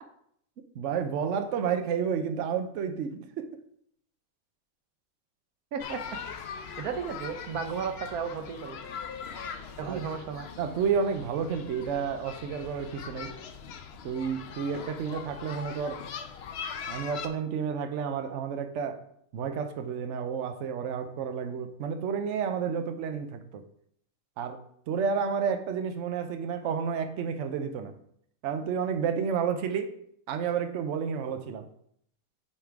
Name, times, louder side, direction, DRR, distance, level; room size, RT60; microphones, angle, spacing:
voice 1, 0.7-3.5 9.8-10.0 10.6-13.4 14.0-16.0 16.9-19.1 19.3-23.6 24.4-24.6 24.9-28.0 28.4-29.9 30.3-31.7, right 6 dB, 60° right, 0.9 m, -31 dB
voice 2, 5.7-6.2 6.8-8.8 9.8-10.5, right 6 dB, 90° right, 1.3 m, -34 dB
sound 1, 5.8-17.3, left 6 dB, 60° left, 0.7 m, -41 dB
8.7 x 3.6 x 4.6 m
omnidirectional pair, 1.5 m